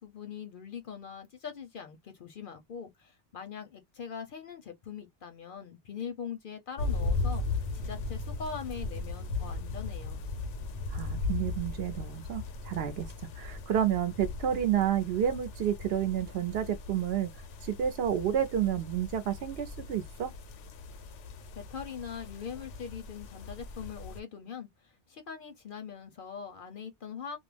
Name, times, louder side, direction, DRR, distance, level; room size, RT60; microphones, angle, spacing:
voice 1, 0.0-10.2 21.5-27.4, left 6 dB, 60° left, 0.6 m, -42 dB
sound 1, 6.8-24.2, left 3 dB, 90° left, 0.9 m, -37 dB
voice 2, 10.9-17.3 17.6-20.3, right 10 dB, 65° right, 0.8 m, -30 dB
2.3 x 2.0 x 3.1 m
omnidirectional pair, 1.2 m